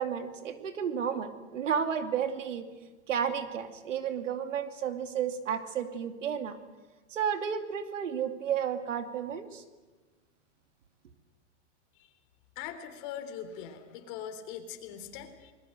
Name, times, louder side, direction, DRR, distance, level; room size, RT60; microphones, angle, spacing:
voice 1, 0.0-2.7 3.1-6.6 7.1-9.6, right 8 dB, 90° right, 7 dB, 2.7 m, -32 dB
voice 2, 12.6-15.5, left 9 dB, 45° left, 7 dB, 3.6 m, -41 dB
27.5 x 20.5 x 7.9 m, 1.3 s
hypercardioid pair, 145°, 36 cm